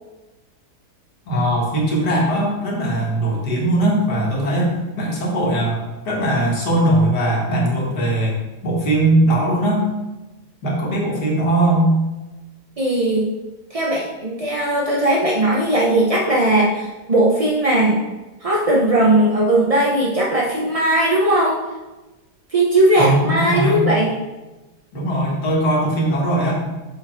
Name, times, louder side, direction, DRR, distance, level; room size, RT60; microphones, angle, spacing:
voice 1, 1.3-5.8 6.1-8.4 8.6-9.9 10.6-11.9 23.0-23.9 24.9-26.5, right 1 dB, 75° left, -3 dB, 2.3 m, -19 dB
voice 2, 12.8-13.3 13.7-18.1 18.4-21.6 22.5-24.1, right 1 dB, 40° right, -3 dB, 0.5 m, -18 dB
6.6 x 4.9 x 4.5 m, 1.1 s
omnidirectional pair, 1.8 m